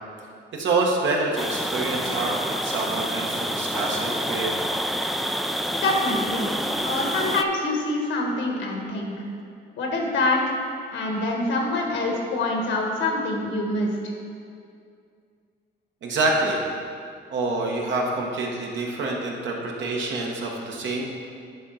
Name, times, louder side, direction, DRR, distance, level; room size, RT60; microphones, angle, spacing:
voice 1, 0.5-4.7 16.0-16.6 17.3-21.0, right 3 dB, 70° right, -1 dB, 1.4 m, -26 dB
sound 1, 1.4-7.4, equal, ahead, 0.4 m, -28 dB
voice 2, 5.7-6.5 6.8-9.1 9.8-10.4 10.9-13.9, left 2 dB, 70° left, 1 dB, 1.6 m, -25 dB
9.6 x 3.8 x 5.6 m, 2.3 s
cardioid pair, 90°, 20 cm